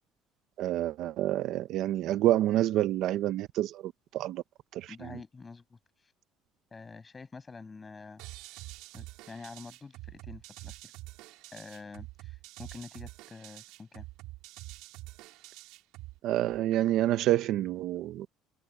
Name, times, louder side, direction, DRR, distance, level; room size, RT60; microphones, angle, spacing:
voice 1, 0.6-4.4 4.7-5.2 16.2-18.3, right 13 dB, 60° right, 1.0 m, -28 dB
voice 2, 4.9-6.1 6.7-8.2 8.9-10.9 11.5-14.1, left 4 dB, 20° left, 7.7 m, -47 dB
sound 1, 8.2-16.2, right 19 dB, 80° right, 4.4 m, -47 dB
cardioid pair, 145°, 0 cm